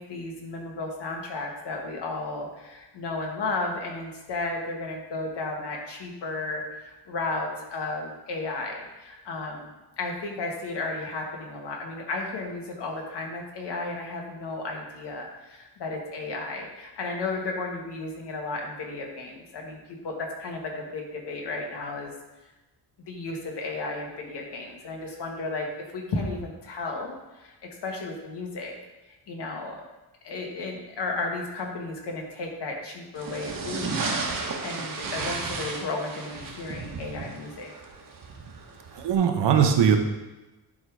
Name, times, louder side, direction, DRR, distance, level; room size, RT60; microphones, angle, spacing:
voice 1, 0.0-9.7 10.0-22.1 23.1-27.5 27.8-28.7 29.3-29.8 30.2-37.7, left 3 dB, 70° left, 0 dB, 1.8 m, -34 dB
sound 1, 33.1-39.1, right 4 dB, 50° right, 1.4 m, -34 dB
voice 2, 39.0-40.0, right 8 dB, 70° right, 5 dB, 1.1 m, -20 dB
11.0 x 3.8 x 4.8 m, 1.1 s
cardioid pair, 120°, 43 cm